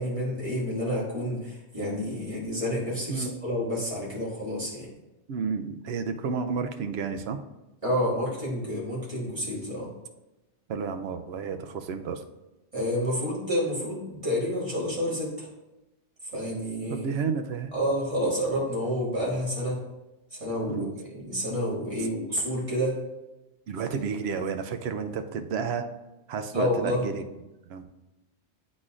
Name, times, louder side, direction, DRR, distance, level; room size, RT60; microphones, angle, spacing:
voice 1, 0.0-4.9 7.8-9.9 12.7-15.5 16.3-17.1 17.7-19.8 20.3-23.0 26.5-27.0, equal, 30° right, -6 dB, 2.0 m, -29 dB
voice 2, 5.3-7.4 10.7-12.2 16.9-17.7 20.7-20.9 23.7-25.9 26.3-27.2 27.7-27.8, right 5 dB, 70° right, 7 dB, 0.8 m, -31 dB
9.6 x 4.1 x 2.4 m, 1.0 s
omnidirectional pair, 1.2 m